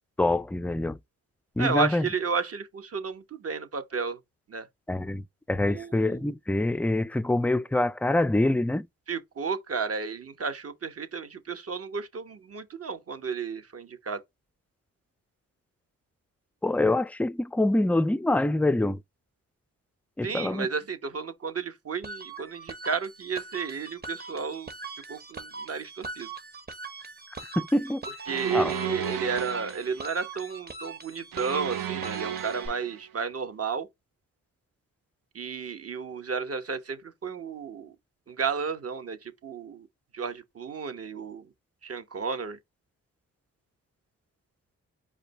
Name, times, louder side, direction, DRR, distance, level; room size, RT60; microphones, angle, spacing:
voice 1, 0.2-1.0 1.6-2.1 4.9-8.9 16.6-19.0 20.2-20.7 27.6-28.0 28.5-28.7, left 2 dB, 5° left, 0.3 m, -25 dB
voice 2, 1.6-4.2 4.5-4.7 5.6-6.2 9.1-14.2 20.2-24.7 25.1-26.3 28.3-33.9 35.3-37.9 38.3-39.9 40.1-41.5 41.8-42.6, right 5 dB, 45° right, 1.0 m, -32 dB
sound 1, 22.0-32.7, right 3 dB, 30° right, 1.2 m, -42 dB
sound 2, 28.3-30.0 31.3-33.0, right 9 dB, 75° right, 0.8 m, -34 dB
4.9 x 2.3 x 4.1 m
cardioid pair, 55°, 34 cm